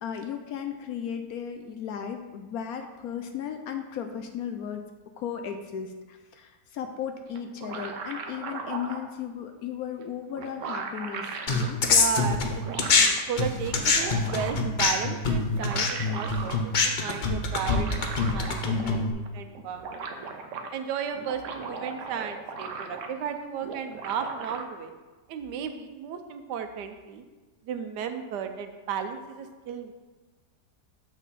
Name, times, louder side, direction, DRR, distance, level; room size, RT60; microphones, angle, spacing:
voice 1, 0.0-4.8 5.2-11.8 18.7-19.2, left 8 dB, 70° left, 6 dB, 0.9 m, -35 dB
sound 1, 7.4-9.1 10.0-10.1 10.4-11.7 12.4-13.2 13.8-14.8 15.4-16.6 17.5-19.0 19.3-19.4 19.6-20.7 21.1-23.3 23.6-24.6, right 4 dB, 60° right, 0.8 m, -38 dB
sound 2, 11.5-13.1 13.4-19.1, left 4 dB, 90° left, 0.4 m, -24 dB
voice 2, 11.8-16.7 17.0-20.2 20.7-24.9 25.3-27.2 27.6-29.9, right 7 dB, 80° right, 7 dB, 1.2 m, -34 dB
7.3 x 5.6 x 4.1 m, 1.3 s
omnidirectional pair, 1.8 m